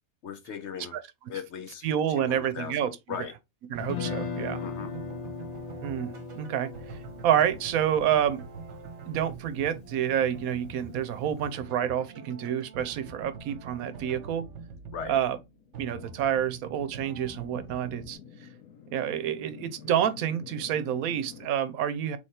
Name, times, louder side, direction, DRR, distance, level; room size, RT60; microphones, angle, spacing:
voice 1, 0.2-1.0 1.3-1.9 2.2-3.3 4.6-5.0 14.9-15.2, left 7 dB, 65° left, 0.8 m, -38 dB
voice 2, 1.8-2.9 3.7-4.6 5.8-8.4 9.1-14.4 15.1-15.4 15.8-18.2 18.9-22.2, right 9 dB, 80° right, 1.1 m, -28 dB
sound 1, 3.7-18.2, right 5 dB, 55° right, 1.1 m, -44 dB
Guitar, 3.8-9.9, left 6 dB, 35° left, 0.7 m, -38 dB
sound 2, 14.0-21.5, left 6 dB, 80° left, 1.3 m, -50 dB
3.3 x 3.3 x 4.1 m
omnidirectional pair, 1.5 m